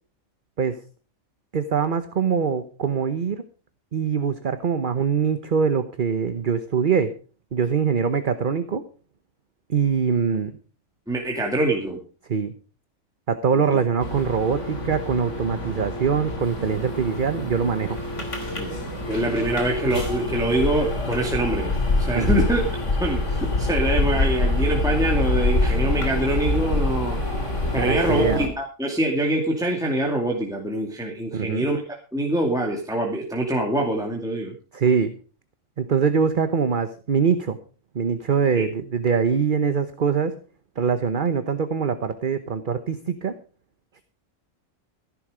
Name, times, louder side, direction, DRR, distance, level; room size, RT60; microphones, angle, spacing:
voice 1, 1.5-3.4 3.9-7.1 7.5-8.8 9.7-10.6 12.3-12.5 13.3-18.0 22.1-22.5 27.8-28.4 31.3-31.7 34.7-35.1 35.8-37.6 37.9-40.3 40.8-43.3, right 6 dB, 40° right, 10 dB, 1.0 m, -23 dB
voice 2, 11.1-12.0 13.5-13.8 18.6-18.7 19.1-22.6 23.0-27.2 27.7-31.8 32.1-34.5 38.5-38.7, right 1 dB, 5° right, -1 dB, 2.4 m, -24 dB
sound 1, 14.0-28.5, left 2 dB, 60° left, 3.5 m, -26 dB
14.5 x 11.0 x 5.0 m, 0.38 s
omnidirectional pair, 1.4 m